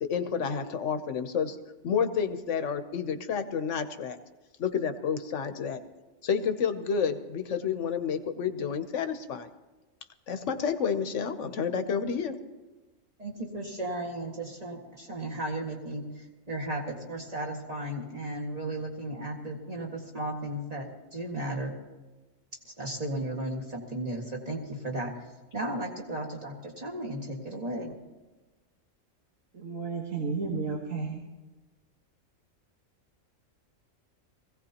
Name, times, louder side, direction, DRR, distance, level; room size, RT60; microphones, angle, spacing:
voice 1, 0.0-1.6 1.8-4.2 4.6-5.8 6.2-9.5 10.3-12.3, left 6 dB, 65° left, 9 dB, 1.2 m, -30 dB
voice 2, 13.2-21.8 22.7-25.2 25.5-27.9, right 1 dB, 30° right, -1 dB, 2.0 m, -35 dB
voice 3, 29.5-31.2, right 4 dB, 85° right, -1 dB, 1.8 m, -32 dB
21.5 x 16.0 x 2.9 m, 1.2 s
omnidirectional pair, 1.4 m